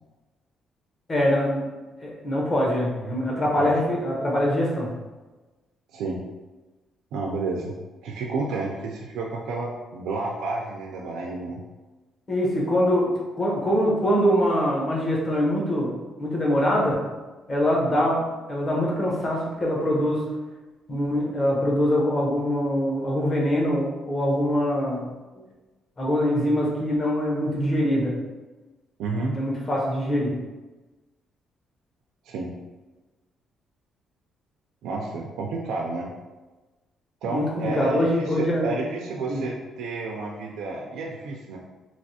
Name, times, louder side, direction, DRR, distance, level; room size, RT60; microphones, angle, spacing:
voice 1, 1.1-1.7 2.0-4.9 12.3-15.9 16.2-17.0 17.5-20.2 20.9-25.0 26.0-28.1 29.3-30.3 37.2-38.7 39.3-39.4, equal, 25° left, -3 dB, 0.7 m, -23 dB
voice 2, 5.9-6.3 7.1-7.7 8.0-11.6 29.0-29.4 32.3-32.5 34.8-36.1 37.2-41.6, right 3 dB, 85° right, -2 dB, 0.4 m, -30 dB
3.1 x 2.9 x 2.8 m, 1.2 s
cardioid pair, 160°, 0 cm